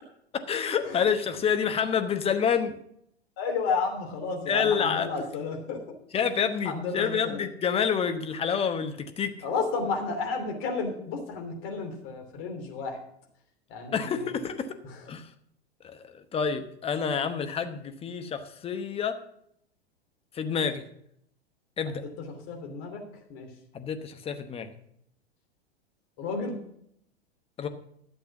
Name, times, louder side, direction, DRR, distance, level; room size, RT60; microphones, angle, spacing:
voice 1, 0.3-2.7 4.5-5.1 6.1-9.3 13.9-14.8 15.1-15.3 15.8-19.2 20.3-20.8 21.8-22.0 23.7-24.7 27.6-27.7, left 7 dB, 15° left, 8 dB, 1.0 m, -28 dB
voice 2, 1.4-2.0 3.4-5.8 6.6-7.5 9.4-13.0 13.7-14.4 14.8-15.0 21.9-23.0 23.3-23.5 26.2-26.6, left 4 dB, 40° left, 3 dB, 3.0 m, -32 dB
11.5 x 7.8 x 6.0 m, 0.72 s
figure-of-eight pair, 95°, 33 cm